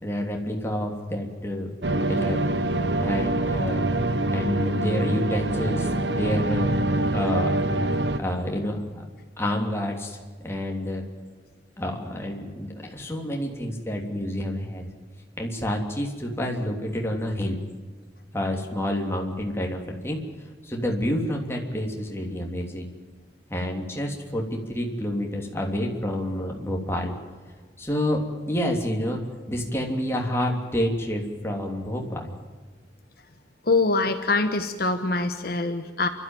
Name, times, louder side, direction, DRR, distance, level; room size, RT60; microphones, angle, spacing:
voice 1, 0.0-1.7 2.1-2.4 3.0-3.8 4.3-6.8 7.1-7.6 8.2-9.0 9.4-10.2 10.4-11.0 11.8-14.9 15.4-17.6 18.3-20.2 20.6-22.9 23.5-27.1 27.8-29.2 29.5-32.3, left 1 dB, 15° left, 0 dB, 3.2 m, -28 dB
sound 1, 1.8-8.2, right 1 dB, 75° right, 1.3 m, -25 dB
voice 2, 33.7-36.1, left 3 dB, 60° left, 7 dB, 1.3 m, -24 dB
29.5 x 13.0 x 9.2 m, 1.5 s
head